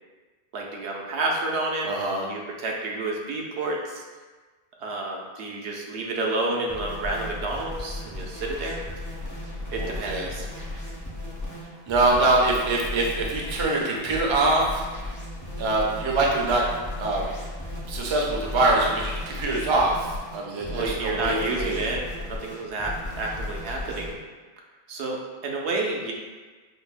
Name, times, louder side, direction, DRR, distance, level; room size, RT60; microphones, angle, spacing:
voice 1, 0.5-1.9 2.3-4.0 4.8-8.8 9.7-10.5 20.7-24.2 24.9-26.1, right 2 dB, 85° right, -1 dB, 0.9 m, -30 dB
voice 2, 1.8-2.3 9.8-10.3 11.9-14.8 15.6-16.6 17.0-17.2 17.9-21.9, right 2 dB, 45° right, -2 dB, 0.4 m, -24 dB
sound 1, 6.7-24.1, left 1 dB, 25° left, 0.5 m, -35 dB
4.9 x 2.0 x 2.4 m, 1.3 s
omnidirectional pair, 1.1 m